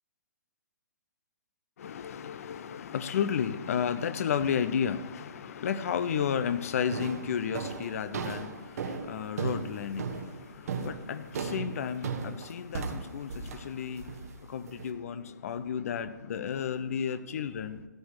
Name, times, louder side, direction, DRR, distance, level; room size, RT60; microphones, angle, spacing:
voice 1, 1.8-17.9, left 7 dB, 55° left, 0.8 m, -33 dB
sound 1, 6.1-6.4 6.9-14.9, right 5 dB, 55° right, 1.4 m, -37 dB
14.5 x 9.5 x 4.8 m
figure-of-eight pair, 125°, 10 cm